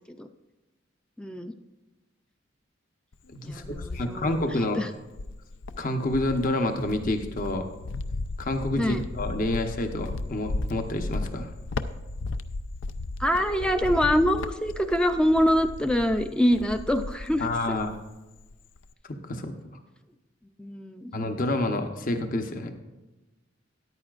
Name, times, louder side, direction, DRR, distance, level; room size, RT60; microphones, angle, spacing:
voice 1, 1.2-1.5 3.4-4.4 4.8-4.9 8.8-9.0 13.2-17.8 20.6-21.1, equal, 5° left, 7 dB, 0.4 m, -25 dB
Cricket, 3.1-4.7 5.1-18.1 18.4-18.9, left 2 dB, 75° left, 0.5 m, -35 dB
voice 2, 3.3-3.6 3.9-4.8 5.8-7.6 8.4-11.5 17.4-18.0 19.1-19.5 21.1-22.7, left 1 dB, 45° left, 5 dB, 0.9 m, -28 dB
13.5 x 10.5 x 2.5 m, 1.1 s
head